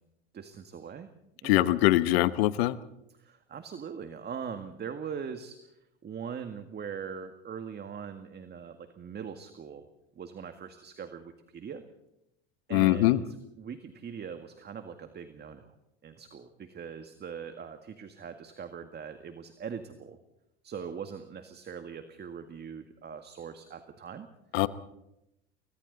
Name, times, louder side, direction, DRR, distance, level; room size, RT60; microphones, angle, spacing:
voice 1, 0.3-1.1 1.4-1.9 3.1-5.8 6.0-9.9 10.2-11.8 12.7-15.7 16.0-20.2 20.6-24.3, right 7 dB, 30° right, 8 dB, 1.9 m, -41 dB
voice 2, 1.4-2.8 12.7-13.2 24.5-24.7, left 17 dB, 70° left, 15 dB, 1.1 m, -23 dB
29.5 x 23.5 x 4.0 m, 0.86 s
hypercardioid pair, 80°, 32 cm